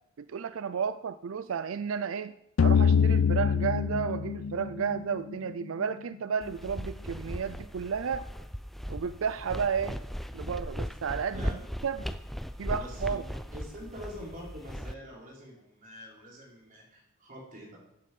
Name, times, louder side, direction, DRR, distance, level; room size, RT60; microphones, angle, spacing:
voice 1, 0.2-2.3 2.6-8.2 8.9-10.0 10.3-12.1 12.6-13.2, right 6 dB, 80° right, 13 dB, 0.5 m, -32 dB
sound 1, 2.6-5.5, left 6 dB, 85° left, 0.5 m, -24 dB
sound 2, 6.4-14.9, equal, ahead, 0.4 m, -38 dB
voice 2, 12.7-17.8, equal, 40° right, -4 dB, 4.6 m, -45 dB
14.0 x 8.8 x 5.4 m, 0.83 s
head